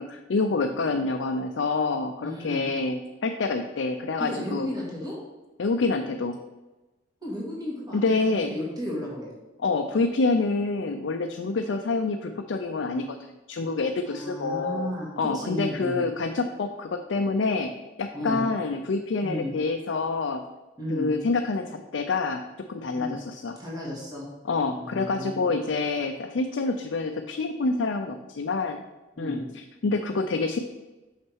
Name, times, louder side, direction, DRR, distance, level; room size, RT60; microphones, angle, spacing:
voice 1, 0.0-4.7 5.6-6.4 7.9-8.5 9.6-17.7 18.0-20.4 20.9-23.6 24.4-28.8 29.2-30.6, left 3 dB, 70° left, 5 dB, 0.5 m, -27 dB
voice 2, 2.2-2.7 4.2-5.2 7.2-9.3 14.1-16.1 18.1-18.4 19.2-19.5 20.8-21.1 22.9-23.2 23.6-24.2 24.8-25.6 29.1-29.5, equal, 20° right, -6 dB, 2.2 m, -34 dB
6.2 x 5.8 x 4.5 m, 1.1 s
head